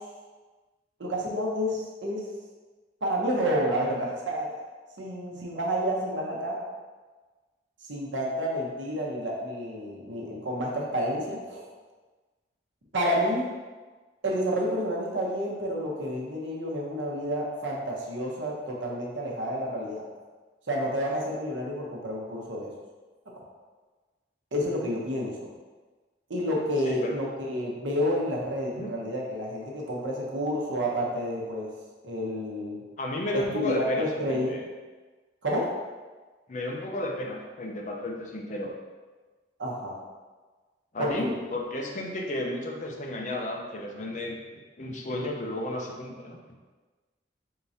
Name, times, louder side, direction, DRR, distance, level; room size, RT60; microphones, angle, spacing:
voice 1, 1.0-2.2 3.0-4.5 5.0-6.6 7.9-11.6 12.9-13.5 14.2-20.0 20.7-22.7 24.5-25.3 26.3-31.7 32.0-32.8 33.3-34.6 35.4-35.7 39.6-40.0 41.0-41.3, equal, 80° right, -2 dB, 0.9 m, -29 dB
voice 2, 33.0-34.6 36.5-38.7 40.9-44.4 44.8-46.4, left 1 dB, 40° left, -1 dB, 0.6 m, -33 dB
4.6 x 3.7 x 2.7 m, 1.3 s
head